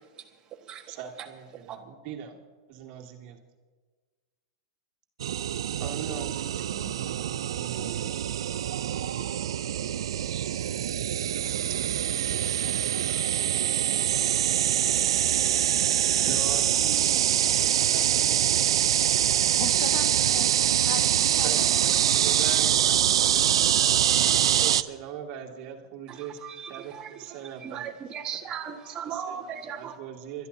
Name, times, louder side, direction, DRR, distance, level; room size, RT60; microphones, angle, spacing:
voice 1, 0.2-1.3 1.5-1.8 26.1-30.0, right 8 dB, 30° right, 4 dB, 1.5 m, -38 dB
voice 2, 0.9-2.4 2.7-3.4 5.8-8.1 16.3-17.2 17.8-18.7 21.4-23.4 24.1-27.9 29.1-30.5, right 8 dB, 45° right, 0 dB, 2.1 m, -40 dB
sound 1, 5.2-24.8, right 10 dB, 85° right, 0.4 m, -24 dB
voice 3, 19.6-20.5 20.8-22.1, left 8 dB, 55° left, 7 dB, 1.4 m, -38 dB
29.0 x 13.0 x 2.7 m, 1.5 s
hypercardioid pair, 125°, 3 cm